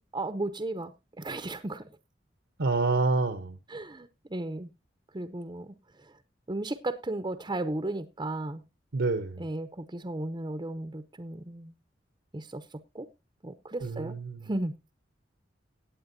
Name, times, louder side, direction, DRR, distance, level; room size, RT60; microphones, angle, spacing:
voice 1, 0.1-1.9 3.7-4.7 5.1-6.2 6.5-8.6 9.4-11.7 12.3-13.1 13.4-14.2 14.4-14.7, right 2 dB, 25° right, 0.7 m, -35 dB
voice 2, 2.6-3.6 8.9-9.4 13.8-14.5, right 3 dB, 75° right, 1.0 m, -28 dB
17.0 x 9.0 x 2.7 m
head